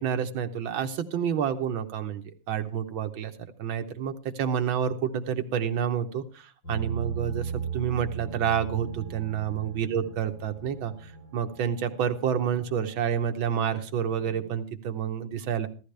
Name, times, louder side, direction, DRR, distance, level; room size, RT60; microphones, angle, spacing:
voice 1, 0.0-3.3 3.6-15.7, right 8 dB, 85° right, 6 dB, 1.8 m, -29 dB
sound 1, 6.6-14.5, right 7 dB, 70° left, 7.9 m, -38 dB
15.0 x 13.0 x 3.3 m, 0.35 s
omnidirectional pair, 2.1 m